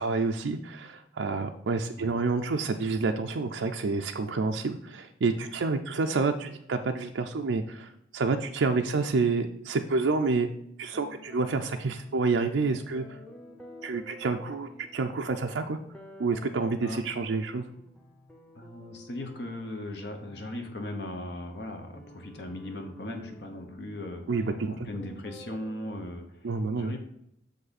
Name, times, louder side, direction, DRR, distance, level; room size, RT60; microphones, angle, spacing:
voice 1, 0.0-10.5 10.8-13.0 13.8-15.8 16.2-17.6 24.3-24.9 26.4-26.9, right 4 dB, 90° right, 4 dB, 0.5 m, -28 dB
sound 1, 10.9-26.0, left 1 dB, 5° left, 0.7 m, -51 dB
voice 2, 18.5-24.2 24.7-27.0, left 1 dB, 65° left, 4 dB, 1.1 m, -38 dB
6.6 x 5.3 x 4.1 m, 0.76 s
head